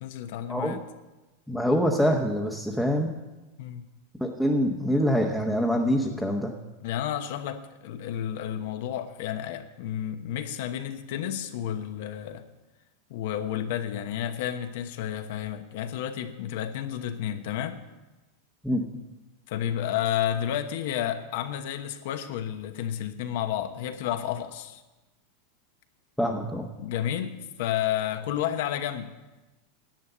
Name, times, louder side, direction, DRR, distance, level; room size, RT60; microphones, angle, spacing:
voice 1, 0.0-0.8 3.6-3.9 6.8-12.4 13.1-17.8 19.5-24.8 26.8-29.1, left 10 dB, 65° left, 9 dB, 1.0 m, -31 dB
voice 2, 1.5-3.1 4.2-6.5 18.6-18.8 26.2-26.7, equal, ahead, -1 dB, 0.9 m, -25 dB
10.5 x 8.4 x 7.9 m, 1.1 s
supercardioid pair, 150°, 0 cm